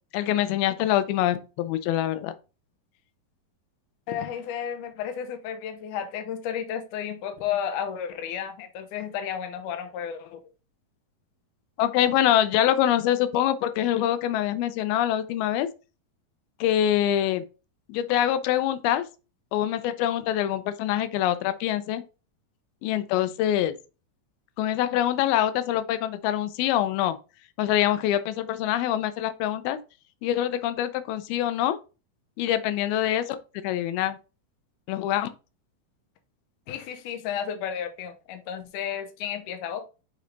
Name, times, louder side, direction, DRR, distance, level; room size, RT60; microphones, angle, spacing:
voice 1, 0.1-2.3 11.8-15.7 16.6-17.4 17.9-19.1 19.5-22.0 22.8-23.7 24.6-27.2 27.6-29.8 30.2-31.8 32.4-33.4 33.6-34.2 34.9-35.3, left 12 dB, 90° left, 2.5 m, -24 dB
voice 2, 4.1-10.4 36.7-39.8, left 8 dB, 70° left, 2.2 m, -32 dB
7.9 x 3.3 x 3.9 m
omnidirectional pair, 4.3 m